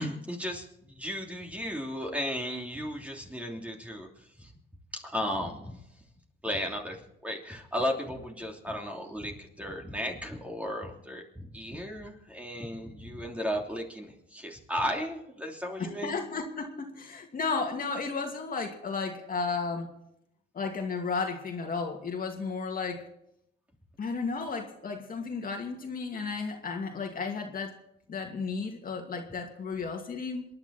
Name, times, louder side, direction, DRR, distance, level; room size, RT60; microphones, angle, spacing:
voice 1, 0.0-4.1 4.4-4.5 4.9-5.8 6.4-7.0 7.2-16.2, equal, 5° right, 1 dB, 3.1 m, -35 dB
voice 2, 15.8-19.9 20.5-23.0 24.0-27.8 28.1-30.5, left 4 dB, 45° left, 2 dB, 2.5 m, -33 dB
27.0 x 10.5 x 4.3 m, 0.79 s
cardioid pair, 90°, 20 cm